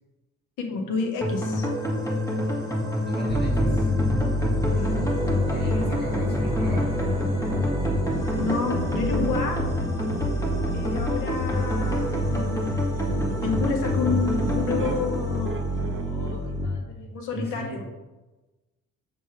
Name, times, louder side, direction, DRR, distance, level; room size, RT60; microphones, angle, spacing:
voice 1, 0.6-1.7 4.7-4.9 5.6-5.9 8.3-9.6 10.7-17.8, left 4 dB, 90° left, 3 dB, 1.4 m, -30 dB
sound 1, 1.2-16.3, left 1 dB, 10° left, 1.8 m, -28 dB
voice 2, 2.9-3.9 5.4-6.9 17.3-17.8, equal, 35° left, -3 dB, 2.2 m, -34 dB
sound 2, 3.3-16.7, equal, 15° right, 1.1 m, -28 dB
sound 3, 11.0-11.2 12.0-12.1 12.6-12.7 14.0-14.1 14.8-15.0 15.4-16.4, right 5 dB, 45° right, 0.8 m, -40 dB
7.6 x 7.0 x 3.3 m, 1.1 s
cardioid pair, 90°, 30 cm